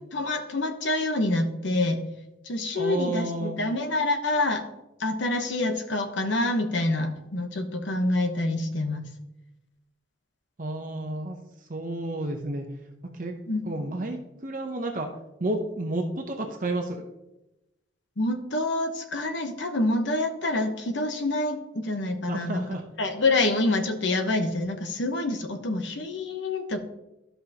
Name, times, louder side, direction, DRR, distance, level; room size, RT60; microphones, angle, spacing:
voice 1, 0.0-2.0 2.4-4.6 5.0-9.1 13.5-13.7 18.2-22.6 23.0-26.8, left 2 dB, 80° left, 6 dB, 1.0 m, -27 dB
voice 2, 2.7-3.6 10.6-11.4 11.7-12.6 13.1-13.3 13.7-15.1 15.4-17.0 22.3-22.8, right 2 dB, 45° right, 3 dB, 0.7 m, -31 dB
12.5 x 5.6 x 2.9 m, 0.94 s
head